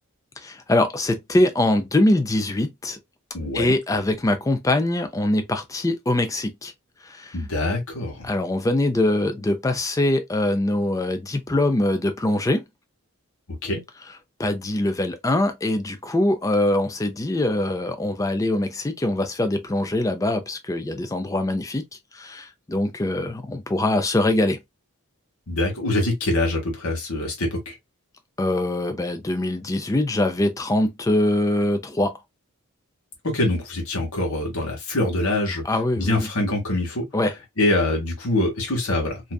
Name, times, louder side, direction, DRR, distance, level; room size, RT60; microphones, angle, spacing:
voice 1, 0.4-3.0 3.5-6.7 7.0-7.4 8.2-12.6 14.4-21.8 22.1-24.6 28.4-32.1 35.6-36.3 37.1-37.3, left 1 dB, 15° left, 0.3 m, -23 dB
voice 2, 3.3-3.7 7.3-8.3 13.6-13.8 25.5-27.7 33.3-35.6 36.0-37.0 37.6-39.2, left 2 dB, 80° left, 1.1 m, -24 dB
2.6 x 2.3 x 2.2 m
head